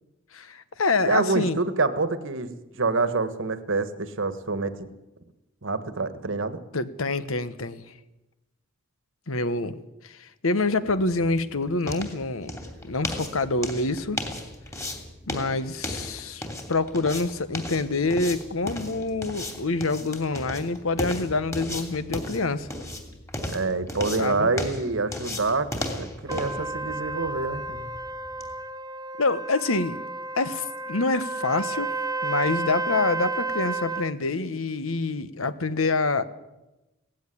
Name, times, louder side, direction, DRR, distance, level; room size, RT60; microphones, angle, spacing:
voice 1, 0.3-1.6 6.7-7.8 9.3-9.7 10.0-12.5 12.8-14.2 15.3-22.7 24.2-24.5 29.2-30.0 30.3-31.9 32.2-36.2, left 3 dB, 75° left, 13 dB, 1.3 m, -26 dB
voice 2, 1.0-4.9 5.6-6.6 23.5-25.7 26.0-27.9, right 3 dB, 65° right, 12 dB, 1.5 m, -27 dB
sound 1, 10.7-28.5, left 1 dB, 15° left, 2.9 m, -36 dB
Trumpet, 26.3-34.1, right 3 dB, 20° right, 0.9 m, -32 dB
17.5 x 15.5 x 9.9 m, 0.98 s
head